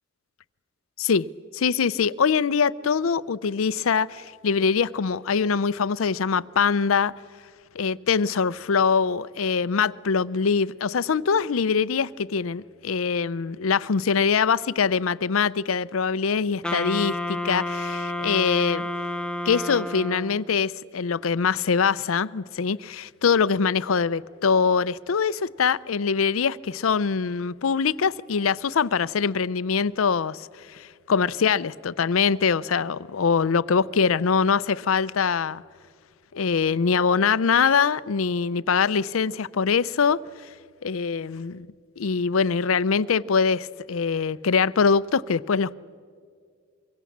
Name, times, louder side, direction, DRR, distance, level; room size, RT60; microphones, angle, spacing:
voice 1, 1.5-7.1 7.7-18.9 19.5-35.6 36.3-40.2 40.8-41.7 42.0-45.7, left 6 dB, 85° left, 0.5 m, -23 dB
Wind instrument woodwind instrument, 16.6-20.5, left 1 dB, 5° left, 0.7 m, -30 dB
25.0 x 23.5 x 7.3 m
head